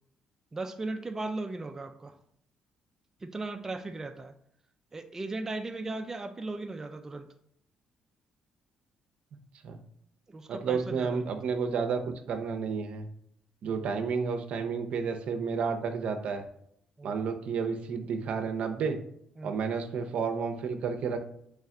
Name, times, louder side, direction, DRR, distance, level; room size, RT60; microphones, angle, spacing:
voice 1, 0.5-2.1 3.2-4.3 4.9-7.3 10.3-11.1 13.7-13.9 17.0-17.3 19.4-19.6, right 2 dB, 20° right, 6 dB, 0.4 m, -37 dB
voice 2, 10.5-12.0 12.3-13.1 13.6-16.4 17.0-19.0 19.4-21.2, right 5 dB, 70° right, 6 dB, 0.6 m, -31 dB
3.2 x 3.2 x 3.6 m, 0.71 s
cardioid pair, 85°, 2 cm